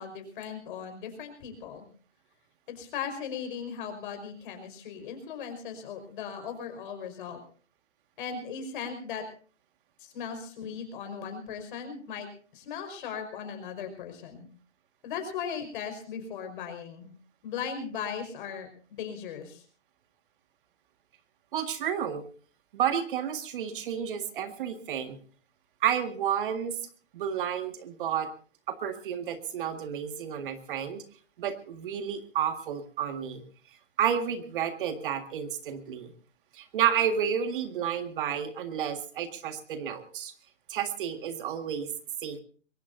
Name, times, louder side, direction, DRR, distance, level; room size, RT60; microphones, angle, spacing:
voice 1, 0.0-1.9 2.7-7.4 8.2-9.3 10.0-14.5 15.0-17.1 17.4-19.6, left 7 dB, 45° left, 6 dB, 5.2 m, -38 dB
voice 2, 21.5-22.2 22.7-25.2 25.8-26.8 27.1-28.3 28.7-31.0 31.4-33.4 34.0-36.1 36.5-40.3 40.7-41.9 42.2-42.4, right 9 dB, 45° right, 8 dB, 1.9 m, -31 dB
22.5 x 20.0 x 2.7 m, 0.39 s
hypercardioid pair, 140°, 35 cm